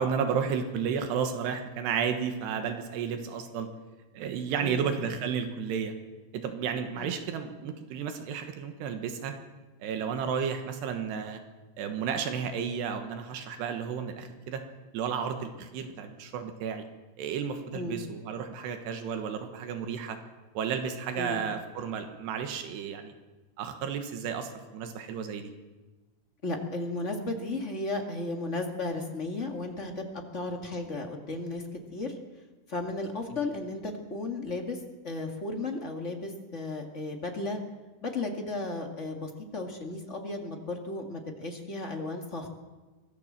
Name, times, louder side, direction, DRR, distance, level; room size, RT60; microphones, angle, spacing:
voice 1, 0.0-3.7 4.1-5.9 6.3-9.4 9.8-11.4 11.8-14.6 14.9-16.9 17.2-20.2 20.5-23.1 23.6-25.5, right 7 dB, 80° right, 7 dB, 3.5 m, -32 dB
voice 2, 4.6-4.9 7.0-7.2 17.7-18.0 21.2-21.4 26.4-32.2 32.7-37.6 38.0-42.5, left 2 dB, 35° left, 3 dB, 1.1 m, -34 dB
24.0 x 17.5 x 7.5 m, 1.2 s
omnidirectional pair, 4.8 m